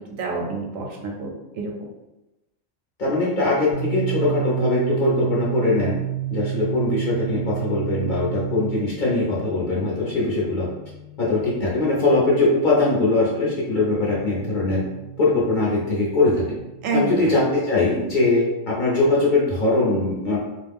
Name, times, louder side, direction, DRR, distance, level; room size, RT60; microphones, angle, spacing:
voice 1, 0.0-1.7 16.8-17.3, right 3 dB, 85° right, 0 dB, 1.0 m, -28 dB
voice 2, 3.0-5.9 6.3-10.7 11.2-14.8 15.2-16.6 16.9-20.4, left 2 dB, 50° left, -6 dB, 0.7 m, -21 dB
sound 1, 3.7-17.3, right 13 dB, 60° right, 0.6 m, -32 dB
2.4 x 2.1 x 3.3 m, 0.98 s
omnidirectional pair, 1.3 m